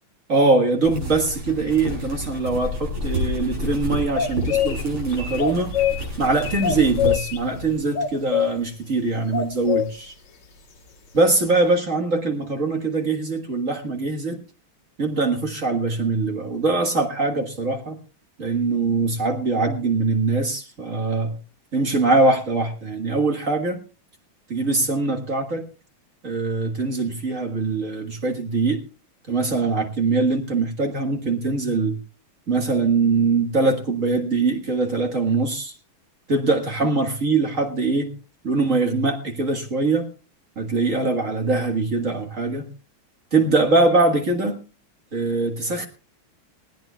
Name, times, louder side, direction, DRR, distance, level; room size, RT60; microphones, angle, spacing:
voice 1, 0.3-5.7 6.2-10.1 11.1-14.4 15.0-18.0 18.4-21.4 21.7-23.8 24.5-25.7 26.2-28.8 29.3-32.0 32.5-35.8 36.3-38.1 38.4-40.1 40.6-42.7 43.3-44.6 45.1-45.9, right 3 dB, 40° right, 4 dB, 1.9 m, -22 dB
sound 1, 0.8-7.8, equal, 85° right, 8.8 m, -30 dB
sound 2, 4.1-4.8 5.1-6.1 6.4-7.4 7.9-8.5 9.3-9.9, left 9 dB, 55° left, 2.2 m, -23 dB
19.5 x 16.5 x 2.3 m, 0.33 s
omnidirectional pair, 2.3 m